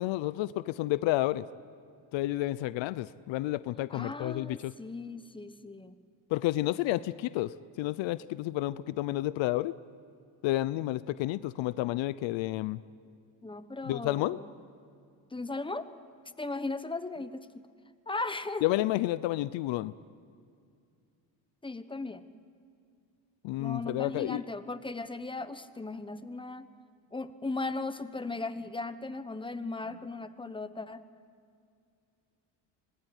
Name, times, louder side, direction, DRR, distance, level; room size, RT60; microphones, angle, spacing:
voice 1, 0.0-1.5 2.1-4.7 6.3-9.7 10.4-12.8 13.8-14.4 18.6-19.9 23.4-24.4, left 16 dB, 75° left, 16 dB, 0.8 m, -30 dB
voice 2, 3.9-6.0 13.4-14.5 15.3-15.9 16.4-17.6 18.1-18.9 21.6-22.2 23.6-26.7 27.1-31.0, left 3 dB, 10° left, 11 dB, 1.1 m, -37 dB
26.5 x 20.5 x 9.9 m, 2.4 s
cardioid pair, 125°, 45 cm